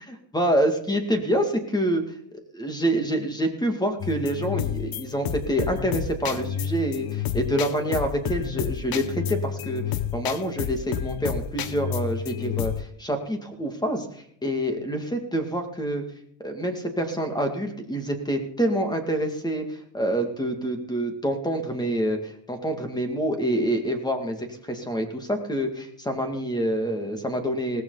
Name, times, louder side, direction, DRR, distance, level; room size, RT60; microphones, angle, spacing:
voice 1, 0.1-2.0 2.5-9.8 10.1-14.1 14.4-16.0 16.4-27.8, right 1 dB, 10° left, 5 dB, 2.3 m, -27 dB
sound 1, 4.0-12.8, left 9 dB, 50° left, 1.0 m, -30 dB
18.0 x 14.5 x 4.0 m, 0.70 s
cardioid pair, 145°, 46 cm